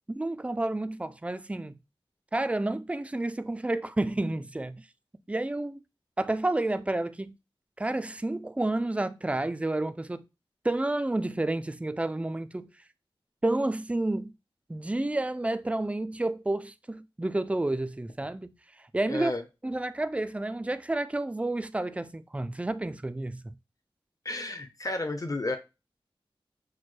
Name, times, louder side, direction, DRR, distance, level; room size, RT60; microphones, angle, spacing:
voice 1, 0.1-1.8 2.3-4.8 5.3-5.8 6.2-7.4 7.8-10.2 10.6-12.7 13.4-14.3 14.7-18.5 18.8-19.3 19.6-23.5, right 2 dB, 15° right, 0.3 m, -30 dB
voice 2, 19.1-19.4 24.2-25.6, left 2 dB, 35° left, 0.7 m, -32 dB
6.0 x 2.1 x 3.2 m
wide cardioid pair, 70°, 10 cm